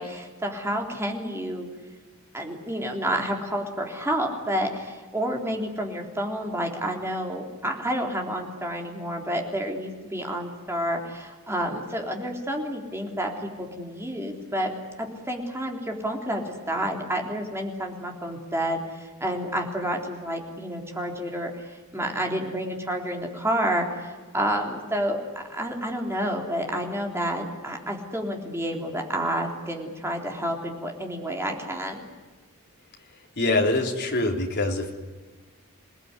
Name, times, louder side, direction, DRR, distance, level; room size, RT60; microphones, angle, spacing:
voice 1, 0.0-1.7 2.3-14.7 15.0-25.2 25.5-32.1, equal, 10° right, 1 dB, 3.5 m, -29 dB
voice 2, 33.4-34.9, left 2 dB, 50° left, 2 dB, 3.4 m, -24 dB
28.0 x 18.5 x 9.7 m, 1.3 s
head